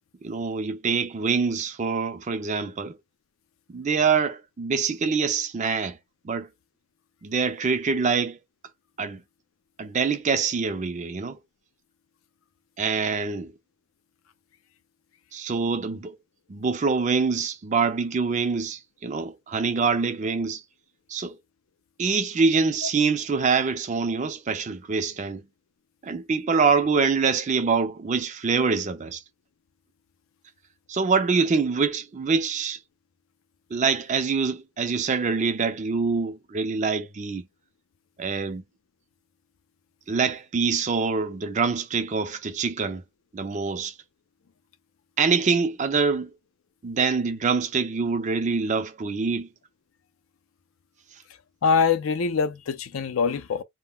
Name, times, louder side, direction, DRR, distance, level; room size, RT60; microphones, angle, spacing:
voice 1, 0.2-3.0 3.7-6.0 6.2-6.5 7.2-8.4 9.0-9.2 9.8-11.4 12.8-13.5 15.3-16.1 16.5-20.6 21.1-21.4 22.0-25.4 26.0-29.2 30.9-32.8 33.7-37.5 38.2-38.6 40.1-43.0 43.3-43.9 45.2-46.3 46.8-49.5, right 5 dB, 35° right, 0.4 m, -25 dB
voice 2, 51.6-53.6, left 5 dB, 85° left, 0.5 m, -23 dB
2.2 x 2.1 x 3.5 m
head